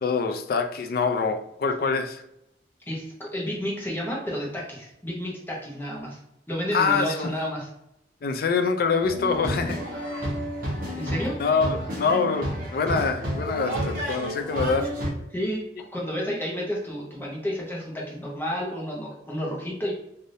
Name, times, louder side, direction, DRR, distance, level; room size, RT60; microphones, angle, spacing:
voice 1, 0.0-2.2 6.7-7.3 8.2-9.8 11.4-14.9, left 5 dB, 55° left, 6 dB, 0.4 m, -25 dB
voice 2, 2.9-6.2 6.5-7.7 10.1-10.2 10.9-11.3 15.3-15.6 15.9-19.9, equal, 10° left, -3 dB, 0.8 m, -31 dB
sound 1, 9.0-15.1, equal, 50° right, 0.8 m, -30 dB
3.3 x 2.6 x 2.6 m, 0.81 s
head